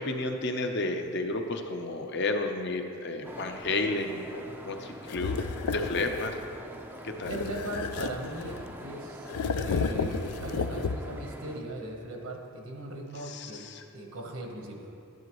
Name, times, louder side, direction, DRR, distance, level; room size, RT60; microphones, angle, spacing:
voice 1, 0.0-5.4 5.7-6.4 7.0-7.3 13.2-13.8, left 2 dB, 50° left, 4 dB, 0.7 m, -32 dB
sound 1, 3.2-11.6, equal, 10° right, 0.5 m, -45 dB
sound 2, 5.1-6.4 7.2-8.8 9.3-11.3, left 5 dB, 90° left, 0.4 m, -32 dB
voice 2, 7.2-13.6 13.9-14.9, right 1 dB, 75° right, 2 dB, 1.2 m, -39 dB
13.0 x 10.5 x 3.1 m, 2.6 s
head